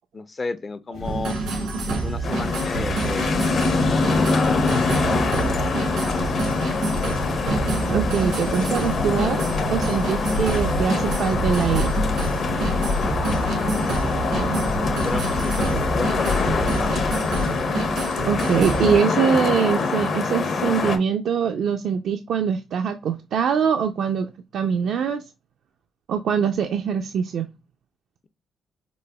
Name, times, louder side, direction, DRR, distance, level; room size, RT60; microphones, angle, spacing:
voice 1, 0.1-1.3 2.0-4.7 5.7-6.5 13.2-14.0 14.8-17.0, left 3 dB, 30° left, 0.4 m, -33 dB
sound 1, 0.9-17.6, left 3 dB, 85° left, 1.0 m, -31 dB
sound 2, 1.0-19.0, right 4 dB, 90° right, 1.8 m, -28 dB
sound 3, 2.2-21.0, left 4 dB, 60° left, 0.8 m, -24 dB
voice 2, 7.9-9.4 9.7-11.9 18.2-25.2 26.1-27.5, right 7 dB, 70° right, 0.4 m, -23 dB
4.9 x 2.1 x 2.2 m
cardioid pair, 90°, 0 cm